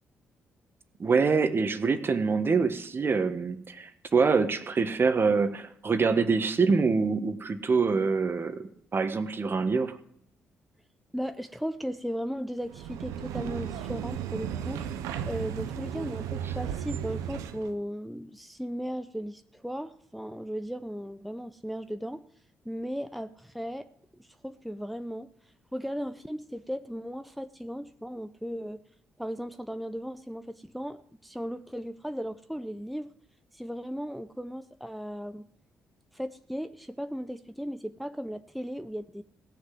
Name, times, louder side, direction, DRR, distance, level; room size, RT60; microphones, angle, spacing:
voice 1, 1.0-10.0, right 4 dB, 45° right, 9 dB, 1.6 m, -25 dB
voice 2, 11.1-14.8 15.2-22.2 22.6-23.9 24.2-25.3 25.7-28.8 29.2-33.1 33.5-35.5 36.1-39.2, equal, ahead, 9 dB, 0.8 m, -36 dB
sound 1, 12.6-17.7, right 9 dB, 80° right, 0.9 m, -35 dB
17.0 x 6.6 x 7.9 m, 0.69 s
hypercardioid pair, 45°, 5 cm